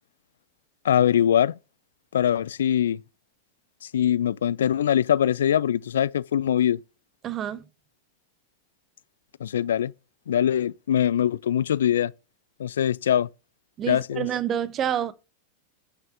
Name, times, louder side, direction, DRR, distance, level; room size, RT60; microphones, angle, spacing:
voice 1, 0.8-1.5 2.1-3.0 3.9-6.8 9.4-9.9 10.3-12.1 12.6-13.3 13.9-14.3, left 10 dB, 65° left, 0.3 m, -22 dB
voice 2, 7.2-7.7 13.8-15.1, right 10 dB, 30° right, 0.8 m, -28 dB
6.5 x 6.0 x 5.5 m
figure-of-eight pair, 90°, 0 cm